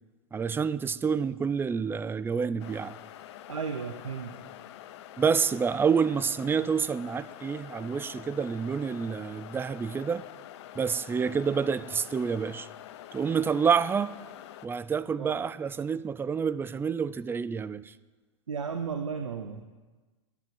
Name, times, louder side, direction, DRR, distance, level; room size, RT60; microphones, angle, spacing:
voice 1, 0.3-3.0 5.2-10.2 10.8-12.7 13.1-14.1 14.6-17.9, right 6 dB, 15° right, 15 dB, 0.4 m, -28 dB
sound 1, 2.6-14.7, left 12 dB, 60° left, 0.7 m, -46 dB
voice 2, 3.5-4.4 15.2-15.4 18.5-19.6, right 6 dB, 90° right, 7 dB, 1.0 m, -34 dB
12.0 x 8.7 x 7.7 m, 1.3 s
hypercardioid pair, 105°, 16 cm